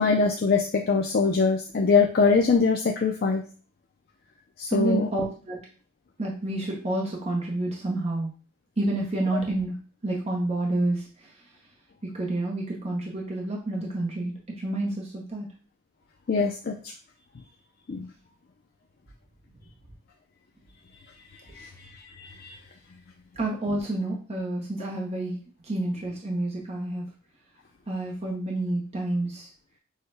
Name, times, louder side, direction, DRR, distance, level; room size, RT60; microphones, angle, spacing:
voice 1, 0.0-3.4 4.6-5.1 16.3-16.7 17.9-18.1 21.6-21.7 22.2-22.5, left 4 dB, 45° left, 2 dB, 0.4 m, -22 dB
voice 2, 4.7-5.6 6.2-8.3 8.8-9.7 10.0-11.3 12.0-15.5 21.5-21.7 23.4-27.1 27.9-29.5, right 2 dB, 30° right, -2 dB, 0.7 m, -29 dB
6.4 x 2.2 x 3.3 m, 0.38 s
head